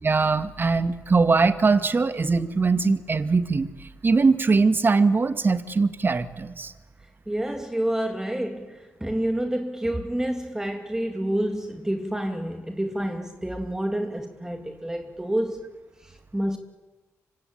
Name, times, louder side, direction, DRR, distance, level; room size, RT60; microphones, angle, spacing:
voice 1, 0.0-3.7 4.0-6.7, right 4 dB, 40° right, 2.0 m, -21 dB
voice 2, 7.3-15.7 16.0-16.6, right 1 dB, 10° right, 2.6 m, -28 dB
25.5 x 25.0 x 9.0 m
cardioid pair, 60°, 6 cm